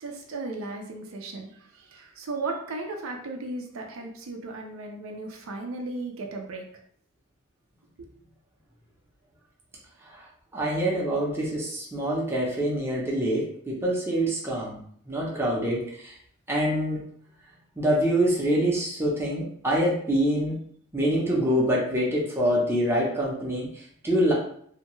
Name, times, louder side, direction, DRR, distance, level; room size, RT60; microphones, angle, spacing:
voice 1, 0.0-1.5 1.9-6.6 8.0-8.1, right 3 dB, 75° right, 2 dB, 0.5 m, -35 dB
voice 2, 10.5-14.8 15.1-16.1 16.5-17.0 17.8-20.6 20.9-24.3, equal, 10° right, -4 dB, 0.6 m, -25 dB
2.7 x 2.2 x 3.0 m, 0.62 s
head